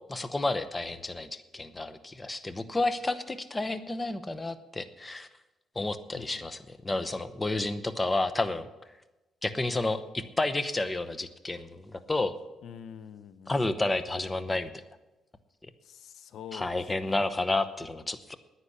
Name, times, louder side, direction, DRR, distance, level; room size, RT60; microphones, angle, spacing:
voice 1, 0.1-5.3 5.7-8.7 9.4-12.3 13.5-14.8 15.6-15.7 16.5-18.4, left 2 dB, 15° left, 12 dB, 0.9 m, -31 dB
voice 2, 12.6-13.7 15.8-16.8 17.1-17.4, left 8 dB, 70° left, 13 dB, 0.7 m, -46 dB
9.9 x 9.8 x 8.2 m, 1.0 s
cardioid pair, 105°, 0 cm